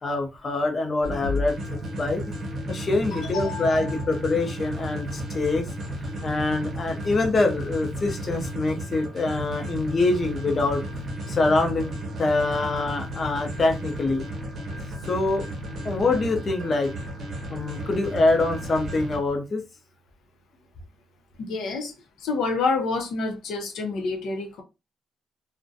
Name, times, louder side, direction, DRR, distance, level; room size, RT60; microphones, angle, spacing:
voice 1, 0.0-2.2 2.7-5.7 6.2-10.8 11.3-11.9 12.2-14.2 15.1-15.4 15.8-16.9 17.5-19.6, left 2 dB, 30° left, 0.5 m, -25 dB
sound 1, 1.0-19.2, equal, 45° right, 0.9 m, -33 dB
voice 2, 3.4-4.0 21.4-21.9 22.2-24.6, left 4 dB, 75° left, 0.6 m, -28 dB
2.4 x 2.1 x 2.5 m
cardioid pair, 165°, 0 cm